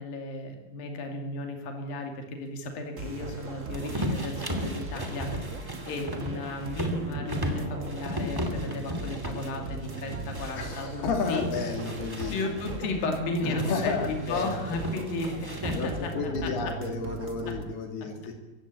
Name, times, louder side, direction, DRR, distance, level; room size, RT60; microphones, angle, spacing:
voice 1, 0.0-11.5 12.3-16.1 16.4-16.5 17.5-17.6, left 2 dB, 70° left, 4 dB, 4.3 m, -34 dB
sound 1, 3.0-17.7, right 3 dB, 70° right, 0.7 m, -39 dB
sound 2, 3.7-10.9 11.2-12.8 13.6-16.2, equal, 10° right, 1.8 m, -35 dB
voice 2, 10.6-12.4 13.4-14.8 15.7-18.4, left 4 dB, 90° left, 4 dB, 4.8 m, -31 dB
24.0 x 15.5 x 8.6 m, 1.1 s
omnidirectional pair, 4.4 m